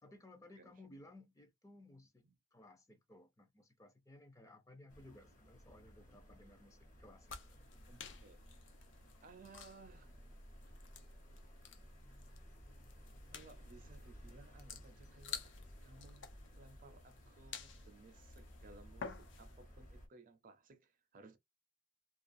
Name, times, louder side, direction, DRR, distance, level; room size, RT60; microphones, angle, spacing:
voice 1, 0.0-2.2 2.5-7.8, left 1 dB, 15° left, 0.5 m, -59 dB
sound 1, 4.9-20.1, equal, 40° left, 1.0 m, -57 dB
sound 2, 7.2-19.7, left 6 dB, 70° left, 0.5 m, -53 dB
voice 2, 7.9-8.4 9.2-10.1 13.3-16.3 16.6-21.4, right 3 dB, 45° right, 0.5 m, -60 dB
2.4 x 2.3 x 2.6 m
head